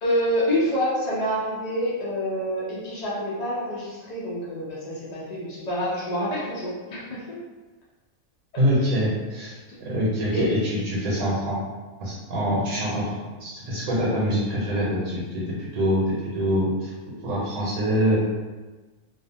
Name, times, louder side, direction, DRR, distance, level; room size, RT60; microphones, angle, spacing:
voice 1, 0.0-7.2 10.3-10.4, equal, 85° left, -7 dB, 0.3 m, -27 dB
voice 2, 8.6-11.6 12.0-16.9 17.2-18.2, equal, 75° right, -6 dB, 1.1 m, -25 dB
2.5 x 2.4 x 2.6 m, 1.3 s
omnidirectional pair, 1.6 m